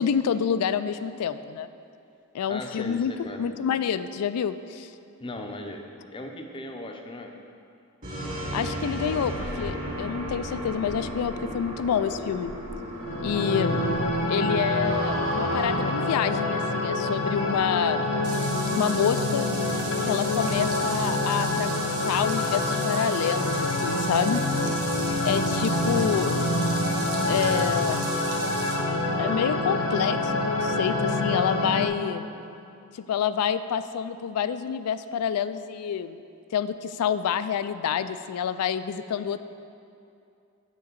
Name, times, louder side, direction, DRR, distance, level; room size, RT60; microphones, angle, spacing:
voice 1, 0.0-1.7 2.3-3.1 3.4-4.9 8.5-12.5 13.2-13.8 14.3-18.1 18.7-19.5 20.0-24.4 25.2-26.4 27.2-28.2 29.2-32.3 32.9-36.2 36.5-39.4, left 8 dB, 85° left, 12 dB, 0.3 m, -27 dB
voice 2, 2.5-3.4 5.2-7.3, left 1 dB, 25° left, 3 dB, 0.5 m, -37 dB
sound 1, 8.0-15.8, equal, 35° right, 2.0 m, -34 dB
sound 2, 12.9-31.9, left 2 dB, 55° left, 0.7 m, -26 dB
sound 3, 18.2-28.8, right 4 dB, 85° right, 1.1 m, -37 dB
8.3 x 3.8 x 6.6 m, 2.6 s
head